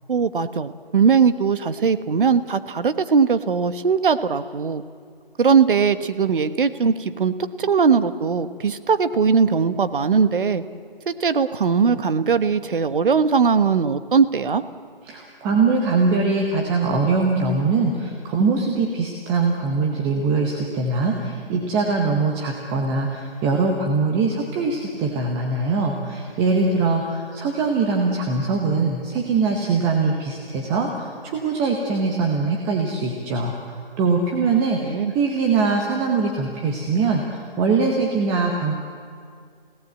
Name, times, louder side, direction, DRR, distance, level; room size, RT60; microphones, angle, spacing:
voice 1, 0.1-4.8 5.4-10.6 11.1-14.6 34.8-35.1, right 5 dB, 60° right, 12 dB, 1.3 m, -20 dB
voice 2, 15.0-38.8, right 4 dB, 10° right, 1 dB, 0.8 m, -22 dB
30.0 x 17.5 x 8.3 m, 2.2 s
figure-of-eight pair, 160°, 29 cm